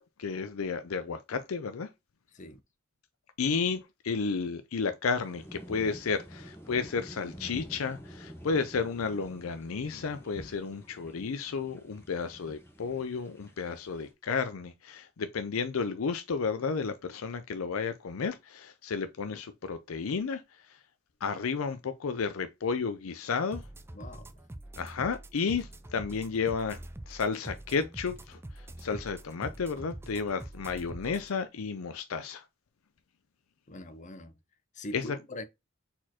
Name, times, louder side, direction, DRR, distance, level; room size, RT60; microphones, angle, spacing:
voice 1, 0.2-1.9 3.4-20.4 20.7-20.8 21.2-23.6 24.8-26.8 27.1-32.4 34.9-35.2, left 5 dB, 85° left, 0.5 m, -32 dB
sound 1, 5.2-14.1, equal, 10° left, 1.3 m, -48 dB
sound 2, 23.5-31.3, right 1 dB, 10° right, 0.4 m, -45 dB
voice 2, 23.9-24.3 33.7-34.3 34.7-35.4, left 1 dB, 35° left, 0.6 m, -42 dB
4.3 x 4.2 x 2.9 m
head